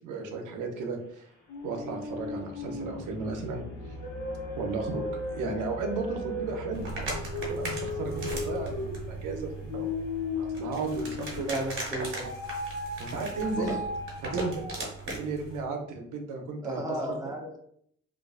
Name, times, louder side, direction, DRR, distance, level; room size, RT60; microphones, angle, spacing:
voice 1, 0.0-1.3 1.6-3.6 4.6-9.9 10.3-11.5 13.0-13.7 14.2-14.6 15.1-17.0, right 4 dB, 85° right, 3 dB, 0.6 m, -34 dB
sound 1, 1.5-11.7 12.2-15.0, left 2 dB, 80° left, 0.9 m, -36 dB
sound 2, 1.7-11.0 11.4-11.7, left 2 dB, 50° left, 0.9 m, -53 dB
sound 3, 6.7-15.6, right 2 dB, 40° right, 1.1 m, -38 dB
voice 2, 11.4-12.3 13.5-13.8 16.6-17.6, right 1 dB, 10° right, 0 dB, 0.6 m, -34 dB
2.4 x 2.3 x 2.3 m, 0.68 s
cardioid pair, 90°, 30 cm